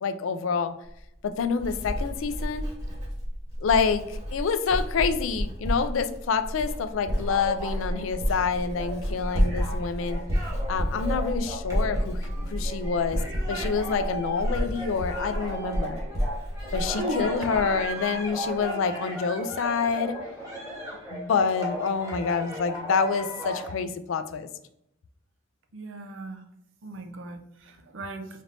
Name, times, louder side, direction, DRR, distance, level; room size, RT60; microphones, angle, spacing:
voice 1, 0.0-0.7 1.2-2.7 3.6-10.2 10.7-13.2 13.5-16.0 16.7-20.2 21.1-24.5, left 5 dB, 75° left, 10 dB, 0.4 m, -27 dB
Writing, 0.9-17.9 18.2-18.6, equal, 35° right, 1.4 m, -31 dB
sound 1, 6.9-23.7, right 1 dB, 15° right, 1.1 m, -36 dB
voice 2, 25.7-26.4 26.8-28.3, right 1 dB, 65° right, 5 dB, 0.6 m, -36 dB
4.1 x 3.3 x 2.6 m, 0.78 s
head